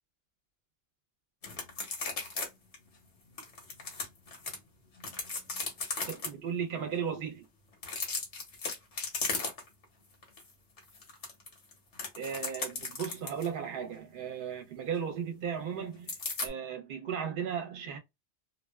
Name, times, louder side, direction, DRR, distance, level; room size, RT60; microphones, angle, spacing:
sound 1, 1.4-2.5 2.7-2.8 3.4-4.6 5.0-6.3 7.7-9.8 10.2-10.4 10.8-13.5 16.1-16.5, left 3 dB, 85° left, 1.2 m, -36 dB
voice 1, 6.0-7.4 12.1-18.0, right 7 dB, 55° right, 0.8 m, -36 dB
2.6 x 2.1 x 2.3 m
omnidirectional pair, 1.2 m